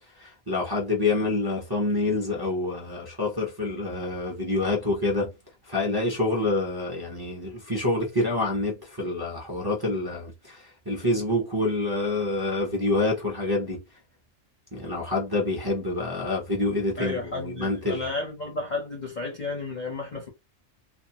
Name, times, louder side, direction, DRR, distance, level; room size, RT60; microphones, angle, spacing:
voice 1, 0.2-5.3 5.7-13.8 14.7-18.1, left 2 dB, 25° right, 0.6 m, -27 dB
voice 2, 17.0-20.3, left 3 dB, 45° left, 0.6 m, -32 dB
2.5 x 2.2 x 2.8 m
omnidirectional pair, 1.3 m